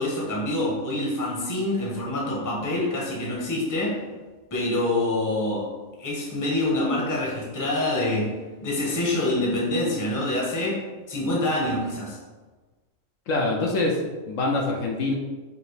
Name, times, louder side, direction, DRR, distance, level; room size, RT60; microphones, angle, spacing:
voice 1, 0.0-4.0 4.5-5.7 6.0-12.2, left 1 dB, 15° left, -4 dB, 0.7 m, -26 dB
voice 2, 13.3-15.1, left 2 dB, 70° left, 0 dB, 0.9 m, -25 dB
4.8 x 2.7 x 3.2 m, 1.3 s
omnidirectional pair, 1.5 m